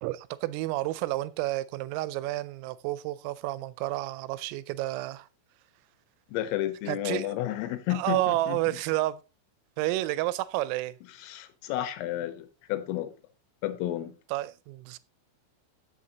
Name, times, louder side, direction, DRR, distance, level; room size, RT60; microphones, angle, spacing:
voice 1, 0.0-5.3 6.9-7.3 7.9-9.2 9.8-11.0 14.3-15.0, right 16 dB, 85° right, 3.3 m, -30 dB
voice 2, 6.3-8.6 11.2-13.1 13.6-14.2, left 13 dB, 85° left, 3.8 m, -32 dB
15.0 x 6.8 x 2.9 m
omnidirectional pair, 5.8 m